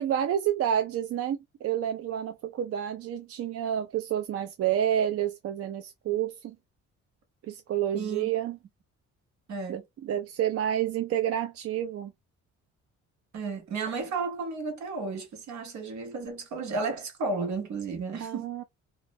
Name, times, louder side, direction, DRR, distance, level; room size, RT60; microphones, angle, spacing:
voice 1, 0.0-6.5 7.5-8.6 9.7-12.1 18.2-18.6, right 10 dB, 50° right, 0.4 m, -29 dB
voice 2, 7.9-8.3 9.5-9.8 13.3-18.5, right 4 dB, 65° right, 1.1 m, -33 dB
2.5 x 2.0 x 2.5 m
cardioid pair, 90°, 30 cm